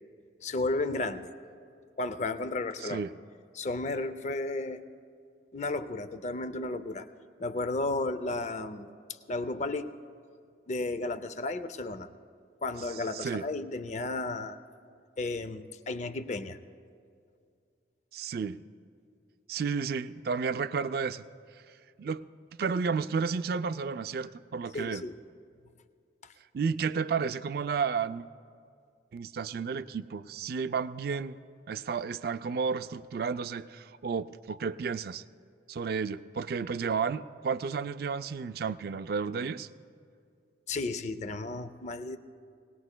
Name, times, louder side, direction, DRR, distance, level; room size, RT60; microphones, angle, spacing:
voice 1, 0.4-1.3 2.0-3.0 3.5-4.9 5.5-7.1 7.4-8.9 9.3-9.9 10.7-12.1 12.6-14.6 15.2-16.6 24.7-25.1 40.7-42.2, left 2 dB, 40° left, 12 dB, 0.5 m, -33 dB
voice 2, 13.1-13.4 18.1-18.6 19.5-21.2 22.0-22.3 22.6-25.0 26.5-28.2 29.1-31.4 31.7-35.2 35.7-39.7, right 5 dB, 55° right, 13 dB, 0.3 m, -32 dB
20.0 x 18.5 x 2.2 m, 2.3 s
head